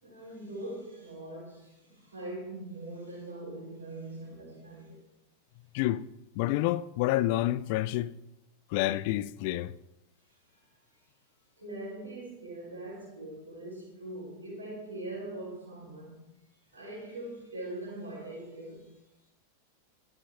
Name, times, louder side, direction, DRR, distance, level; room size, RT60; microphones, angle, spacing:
voice 1, 0.0-5.0 10.3-10.7 11.6-16.2 16.7-19.0, right 1 dB, 75° right, 3.7 m, -42 dB
voice 2, 6.4-8.1 8.7-9.7, left 15 dB, 45° left, 0.4 m, -28 dB
11.5 x 7.3 x 3.6 m
figure-of-eight pair, 90°, 0 cm